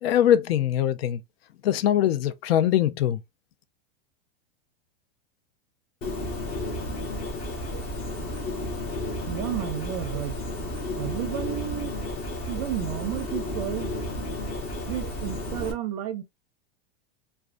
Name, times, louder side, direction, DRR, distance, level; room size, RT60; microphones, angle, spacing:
voice 1, 0.0-1.2 1.6-3.2, left 11 dB, 90° left, 0.5 m, -22 dB
Bird, 6.0-15.7, left 1 dB, 20° left, 0.5 m, -32 dB
voice 2, 9.3-10.4 11.0-11.9 12.5-13.9 14.9-16.2, right 11 dB, 40° right, 0.4 m, -32 dB
2.4 x 2.3 x 2.4 m
supercardioid pair, 170°, 29 cm